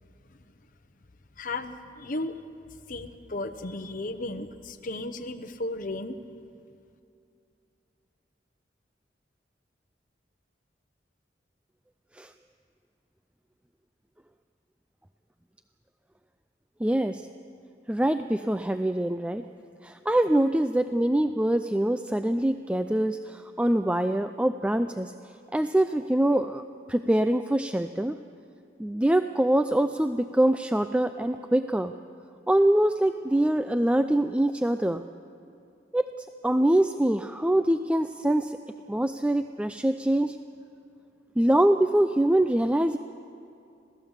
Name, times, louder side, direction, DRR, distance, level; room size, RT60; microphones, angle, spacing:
voice 1, 1.4-2.4 2.9-6.2, left 2 dB, 50° left, 6 dB, 1.0 m, -34 dB
voice 2, 16.8-17.3 17.9-19.5 19.8-25.1 25.5-26.6 26.9-28.2 28.8-31.9 32.5-35.0 35.9-36.1 36.4-38.6 38.9-40.4 41.4-43.0, right 1 dB, 5° right, 9 dB, 0.4 m, -24 dB
26.5 x 17.0 x 7.3 m, 2.6 s
head